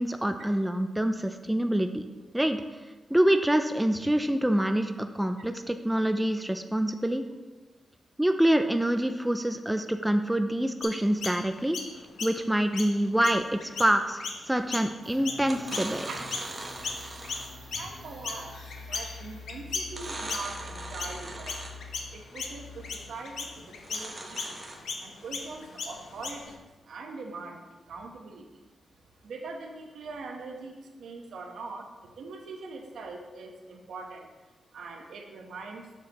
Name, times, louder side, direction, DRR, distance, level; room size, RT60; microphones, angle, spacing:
voice 1, 0.0-2.1 2.3-2.6 3.1-7.2 8.2-11.8 12.2-16.1, right 1 dB, 5° right, 7 dB, 0.3 m, -26 dB
Chirp tweet, 10.8-16.5 16.8-26.6, left 4 dB, 75° left, 0.8 m, -38 dB
sound 1, 14.5-14.9 15.4-17.7 19.9-21.9 23.8-24.8, right 2 dB, 30° right, 0.9 m, -40 dB
sound 2, 15.0-23.5, left 3 dB, 45° right, 2.2 m, -47 dB
voice 2, 16.1-16.9 17.7-21.5 22.1-24.6 25.0-28.6 29.2-31.9 32.1-34.3 34.7-35.9, right 3 dB, 75° right, 2 dB, 1.0 m, -42 dB
7.2 x 6.1 x 2.9 m, 1.2 s
wide cardioid pair, 125°, 0 cm